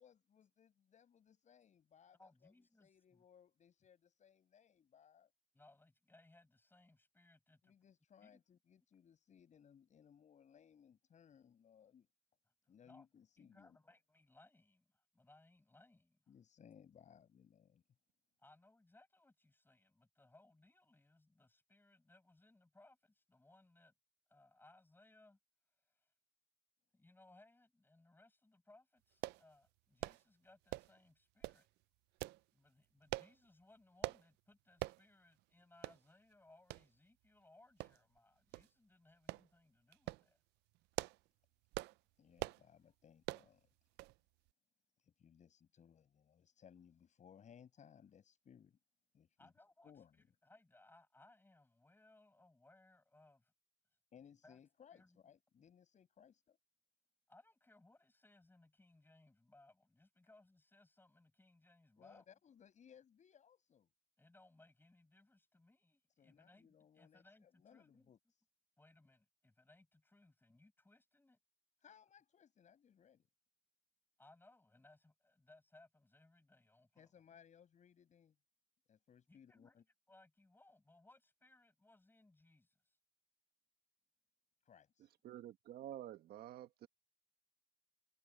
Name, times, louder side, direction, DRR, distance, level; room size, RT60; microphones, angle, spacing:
voice 1, 0.0-2.5 2.8-5.3 7.6-12.1 12.7-13.8 16.3-17.8 42.2-43.7 45.0-48.8 49.1-49.5 49.8-50.2 54.1-56.6 62.0-63.9 66.2-68.4 71.8-73.3 77.0-78.4 78.9-79.8 84.6-85.1, left 8 dB, 45° left, 7.1 m, -64 dB
voice 2, 2.2-3.2 5.5-7.7 8.2-8.4 12.6-13.1 13.4-16.2 18.4-23.9 24.3-25.4 25.9-26.1 26.9-31.7 32.5-40.4 49.4-49.9 50.4-53.5 54.4-54.6 54.9-55.2 57.3-62.3 64.2-68.1 68.8-71.4 74.2-77.1 79.3-83.0, left 2 dB, 10° left, 6.6 m, -67 dB
sound 1, 29.2-29.4 30.0-30.2 30.7-31.0 31.4-31.6 32.2-32.4 33.1-33.3 34.0-34.2 34.8-35.0 35.4-35.5 35.8-36.0 36.7-36.8 37.8-38.2 38.5-38.7 39.3-39.5 39.9-40.2 40.7-41.3 41.7-42.0 42.4-42.6 43.2-43.5 44.0-44.2 44.5-44.6, right 19 dB, 85° right, 0.4 m, -43 dB
voice 3, 85.2-86.9, right 12 dB, 70° right, 1.5 m, -50 dB
cardioid pair, 110°, 17 cm